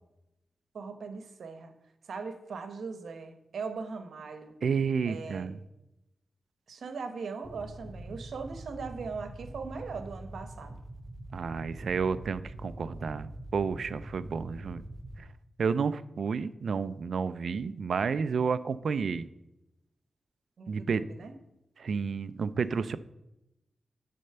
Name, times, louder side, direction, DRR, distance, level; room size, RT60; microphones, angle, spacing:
voice 1, 0.7-1.7 2.0-4.5 5.1-5.5 6.7-10.8 20.6-21.3 22.7-22.8, right 4 dB, 80° right, 8 dB, 1.0 m, -40 dB
voice 2, 4.6-5.6 11.3-14.8 15.2-15.3 15.6-19.2 20.7-21.0 21.8-23.0, right 5 dB, 60° right, 13 dB, 0.4 m, -31 dB
sound 1, 7.4-15.2, right 1 dB, 20° right, 0.7 m, -44 dB
10.0 x 4.3 x 6.7 m, 0.90 s
wide cardioid pair, 175°, 0 cm